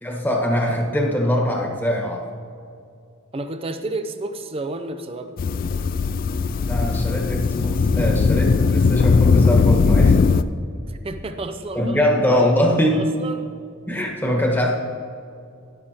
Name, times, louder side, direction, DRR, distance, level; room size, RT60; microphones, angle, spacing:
voice 1, 0.0-2.3 6.7-10.2 11.7-13.1 13.9-14.8, equal, 10° left, 0 dB, 1.3 m, -22 dB
voice 2, 3.3-5.3 10.9-12.0 12.9-13.5, right 2 dB, 30° right, 8 dB, 0.5 m, -31 dB
sound 1, 5.4-10.4, left 4 dB, 45° left, 0.3 m, -18 dB
12.5 x 11.0 x 2.9 m, 2.4 s
head